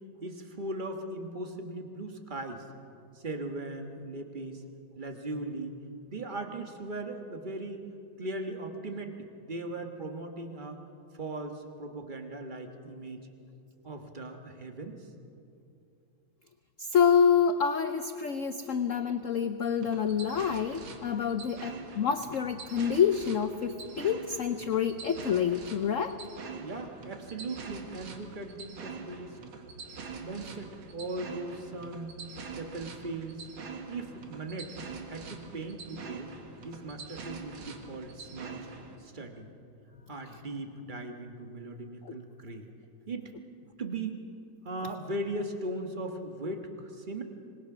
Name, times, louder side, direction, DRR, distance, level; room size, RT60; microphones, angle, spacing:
voice 1, 0.2-2.7 3.1-4.6 4.9-5.7 6.1-7.8 8.2-9.1 9.4-10.8 11.1-13.2 13.8-15.0 26.6-29.4 30.2-32.2 32.6-33.5 33.9-34.8 35.1-36.3 36.6-38.7 39.0-39.5 40.1-42.7 43.1-43.3 43.8-44.2 44.6-47.2, right 2 dB, 25° right, 4 dB, 1.4 m, -38 dB
voice 2, 16.8-26.2, left 7 dB, 80° left, 9 dB, 0.7 m, -27 dB
sound 1, 19.8-39.0, right 4 dB, 75° right, 2.4 m, -44 dB
26.0 x 20.0 x 6.1 m, 2.6 s
omnidirectional pair, 2.2 m